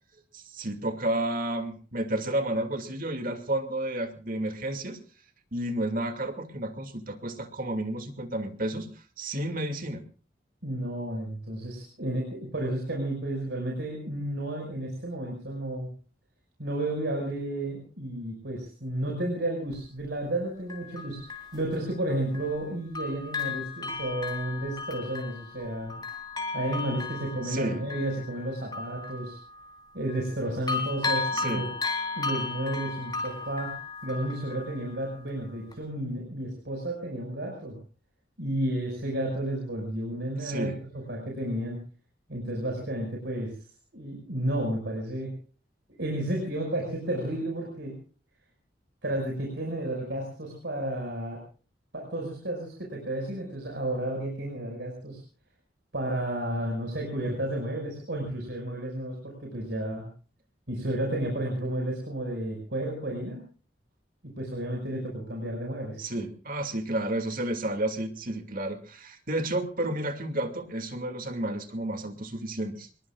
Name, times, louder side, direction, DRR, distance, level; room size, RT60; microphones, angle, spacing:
voice 1, 0.3-5.0 5.5-8.9 9.2-10.0 27.4-27.8 31.3-31.7 40.4-40.8 66.0-72.9, right 1 dB, 50° right, 7 dB, 2.4 m, -31 dB
voice 2, 10.6-15.9 16.6-25.9 26.5-29.4 29.9-31.7 32.2-33.8 34.0-37.8 38.4-41.8 42.3-43.5 43.9-45.3 46.0-48.0 49.0-51.4 51.9-55.2 55.9-60.1 60.7-63.4 64.2-66.1, right 1 dB, 70° right, 0 dB, 5.7 m, -32 dB
Bell, 19.7-19.8 20.7-22.7 22.9-30.4 30.7-35.3 35.7-35.8, left 4 dB, 25° left, 3.7 m, -35 dB
26.0 x 21.5 x 2.4 m, 0.38 s
head